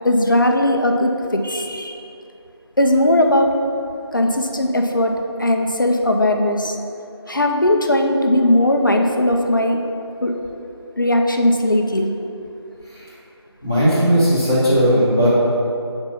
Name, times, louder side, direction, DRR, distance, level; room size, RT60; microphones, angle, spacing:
voice 1, 0.0-2.0 2.8-3.5 4.1-5.1 5.4-6.7 7.3-9.8 10.2-10.3 11.0-12.1, left 1 dB, 45° left, 3 dB, 0.5 m, -18 dB
voice 2, 13.6-15.3, equal, 10° right, -13 dB, 0.7 m, -16 dB
5.8 x 4.3 x 5.5 m, 2.7 s
figure-of-eight pair, 170°, 14 cm